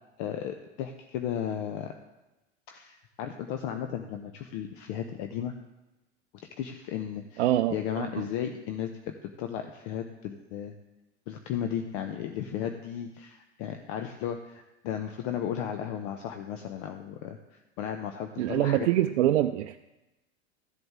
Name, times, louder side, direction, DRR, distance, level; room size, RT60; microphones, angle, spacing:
voice 1, 0.2-1.9 2.7-5.5 6.6-7.4 7.7-10.7 11.3-18.9, left 9 dB, 50° left, 6 dB, 0.8 m, -35 dB
voice 2, 7.4-8.2 18.4-19.8, right 13 dB, 70° right, 7 dB, 0.5 m, -25 dB
14.0 x 7.8 x 3.6 m, 1.0 s
hypercardioid pair, 85°, 35 cm